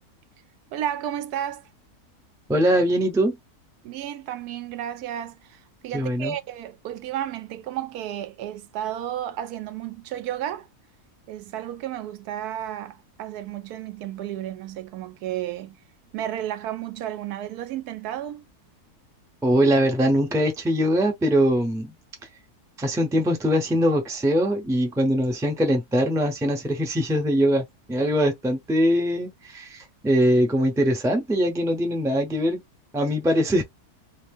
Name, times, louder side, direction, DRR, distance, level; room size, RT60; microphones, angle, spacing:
voice 1, 0.7-1.7 3.8-10.7 11.3-15.8 16.1-18.5, right 11 dB, 85° right, 1.1 m, -32 dB
voice 2, 2.5-3.4 5.9-6.3 19.4-21.9 22.8-32.6 32.9-33.6, equal, 5° right, 0.4 m, -22 dB
2.8 x 2.4 x 3.4 m
omnidirectional pair, 1.6 m